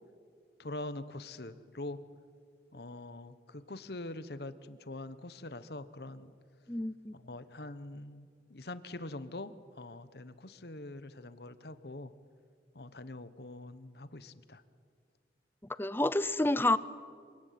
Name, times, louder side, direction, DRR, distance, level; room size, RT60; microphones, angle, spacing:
voice 1, 0.6-2.0 2.7-6.3 7.1-12.1 12.7-14.6, left 2 dB, 60° left, 13 dB, 1.1 m, -44 dB
voice 2, 6.7-7.1 15.8-16.8, left 2 dB, 10° left, 16 dB, 0.6 m, -28 dB
27.0 x 18.5 x 9.4 m, 2.1 s
head